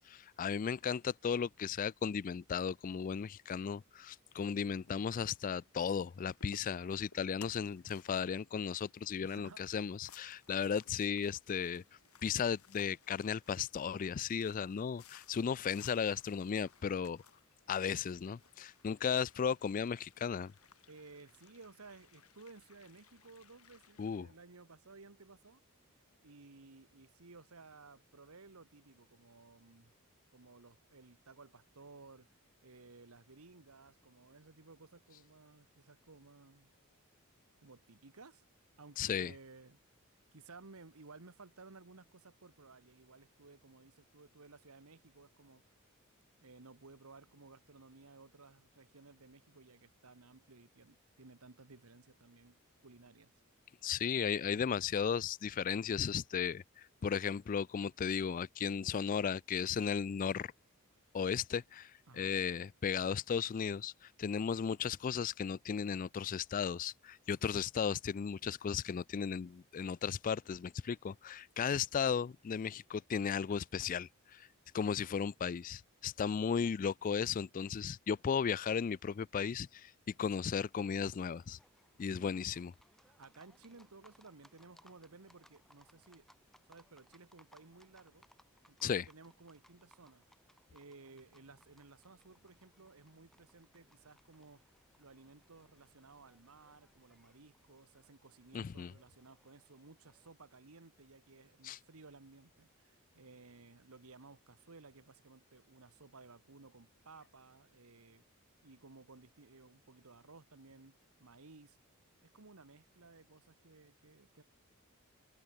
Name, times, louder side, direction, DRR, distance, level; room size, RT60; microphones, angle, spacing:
voice 1, 0.1-11.8 12.2-17.2 17.7-20.5 24.0-24.3 39.0-39.3 53.8-60.5 61.1-63.9 64.2-74.5 74.7-79.9 80.2-81.6 82.0-82.7 88.8-89.0 98.5-98.9 101.6-101.8, left 7 dB, 35° left, 0.3 m, -35 dB
sound 1, 4.6-24.2, left 7 dB, 80° left, 3.0 m, -63 dB
voice 2, 9.2-9.7 20.9-25.6 26.2-29.9 30.3-36.7 37.6-38.5 38.8-39.8 40.3-45.6 46.4-53.3 62.1-62.3 82.1-82.4 83.0-86.3 86.7-88.3 88.7-90.3 90.7-94.6 95.0-108.2 108.6-110.9 111.2-111.8 112.2-114.4, right 3 dB, 75° right, 1.4 m, -57 dB
Livestock farm animals working animals, 80.4-100.3, equal, ahead, 3.4 m, -68 dB
head